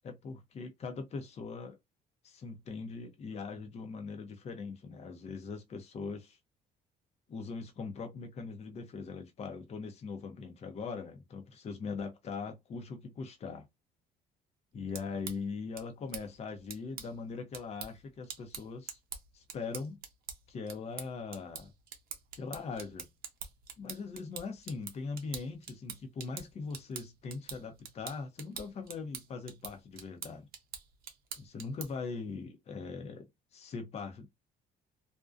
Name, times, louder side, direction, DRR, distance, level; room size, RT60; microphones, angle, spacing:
voice 1, 0.0-1.8 2.2-6.4 7.3-13.7 14.7-19.0 19.3-20.0 20.5-21.7 22.4-23.1 23.8-30.5 31.4-34.3, left 4 dB, 40° left, 0.6 m, -41 dB
sound 1, 14.7-32.1, right 7 dB, 65° right, 0.7 m, -47 dB
2.4 x 2.1 x 2.4 m
cardioid pair, 110°, 17 cm